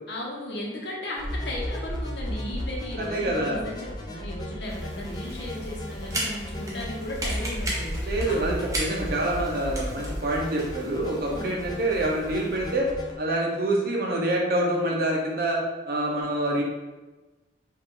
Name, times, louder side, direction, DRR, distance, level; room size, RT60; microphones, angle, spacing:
voice 1, 0.1-8.4 11.1-11.6, left 1 dB, 60° left, -2 dB, 1.0 m, -36 dB
sound 1, 1.2-13.2, equal, 20° left, 0.5 m, -35 dB
voice 2, 3.0-3.6 8.0-12.9 13.2-15.6 15.9-16.6, right 1 dB, 50° right, -2 dB, 0.9 m, -26 dB
sound 2, 4.6-12.8, right 1 dB, 15° right, 0.8 m, -37 dB
5.1 x 2.6 x 3.8 m, 1.2 s
head